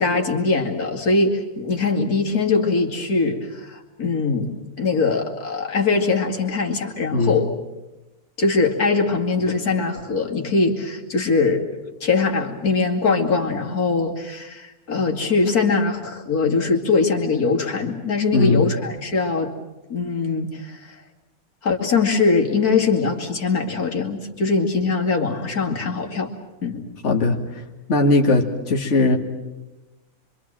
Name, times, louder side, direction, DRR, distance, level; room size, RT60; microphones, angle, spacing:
voice 1, 0.0-7.5 8.4-11.8 12.0-19.5 19.9-20.8 21.6-26.3 26.6-26.9, left 4 dB, 85° left, 1 dB, 2.9 m, -22 dB
voice 2, 18.3-18.6 27.0-27.4 27.9-29.2, left 2 dB, 50° left, 0 dB, 2.3 m, -18 dB
26.0 x 25.0 x 7.6 m, 1.0 s
omnidirectional pair, 1.6 m